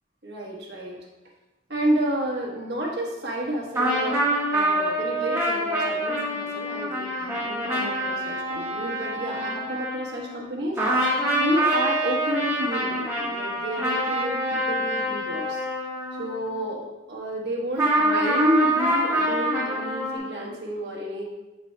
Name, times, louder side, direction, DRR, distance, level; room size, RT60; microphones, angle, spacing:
voice 1, 0.2-1.0 1.7-4.1 4.5-10.8 11.4-15.7 16.1-21.2, right 1 dB, 65° right, -2 dB, 1.3 m, -30 dB
sound 1, 3.7-10.5 10.8-16.7 17.8-20.2, right 1 dB, 15° right, 1.4 m, -26 dB
8.0 x 5.5 x 2.3 m, 1.1 s
head